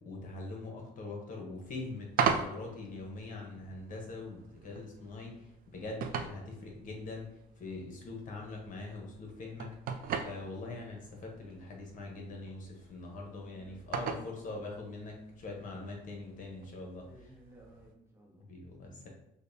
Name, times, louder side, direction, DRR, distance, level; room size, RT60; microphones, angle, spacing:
voice 1, 0.0-7.3 7.6-9.7 10.2-17.1 18.4-19.1, left 3 dB, 50° left, 0 dB, 0.9 m, -43 dB
sound 1, 1.6-17.9, right 6 dB, 60° right, 0.4 m, -40 dB
voice 2, 13.4-13.9 17.0-19.1, right 1 dB, 15° right, -1 dB, 0.8 m, -59 dB
5.1 x 2.2 x 2.6 m, 0.84 s
cardioid pair, 110°, 17 cm